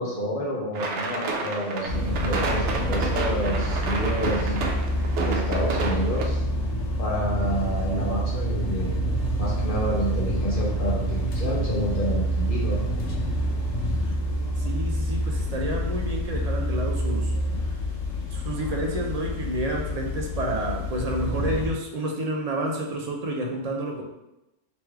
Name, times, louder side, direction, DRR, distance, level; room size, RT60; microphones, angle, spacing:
voice 1, 0.0-4.5 5.2-6.4 7.0-12.8, equal, 50° left, -4 dB, 0.8 m, -29 dB
sound 1, 0.7-6.2, right 3 dB, 75° right, 0.9 m, -30 dB
sound 2, 1.8-21.7, equal, 70° left, 1.1 m, -27 dB
voice 2, 14.6-17.8 18.3-24.0, right 1 dB, 50° right, 0 dB, 0.5 m, -30 dB
3.2 x 3.1 x 3.4 m, 0.93 s
omnidirectional pair, 1.2 m